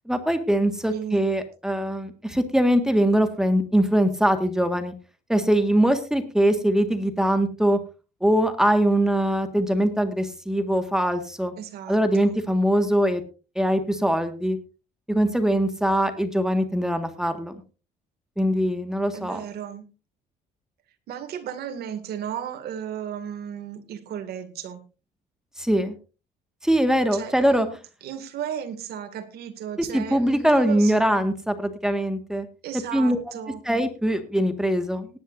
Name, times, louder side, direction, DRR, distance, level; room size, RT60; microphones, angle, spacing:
voice 1, 0.1-4.9 5.3-7.8 8.2-11.5 11.9-13.2 13.5-14.6 15.1-17.5 18.4-19.4 25.6-25.9 26.6-27.7 29.9-32.5 32.9-33.2 33.6-35.1, equal, 5° right, 7 dB, 1.7 m, -22 dB
voice 2, 0.9-1.3 11.6-12.4 19.1-19.9 21.1-24.8 27.1-31.2 32.6-33.6, right 9 dB, 70° right, 7 dB, 2.4 m, -35 dB
19.0 x 10.5 x 2.6 m, 0.33 s
cardioid pair, 110°, 17 cm